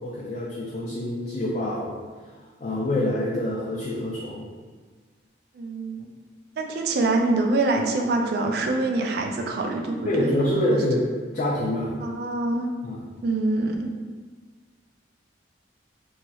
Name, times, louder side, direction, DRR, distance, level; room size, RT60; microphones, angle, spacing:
voice 1, 0.0-2.0 2.6-4.4 10.1-11.1 11.3-11.9 12.8-13.0, left 1 dB, 40° left, -6 dB, 0.4 m, -26 dB
voice 2, 5.5-6.1 6.6-10.3 10.7-10.8 12.0-12.7 13.2-13.9, right 2 dB, 55° right, 3 dB, 0.3 m, -25 dB
3.0 x 2.7 x 2.3 m, 1.4 s
head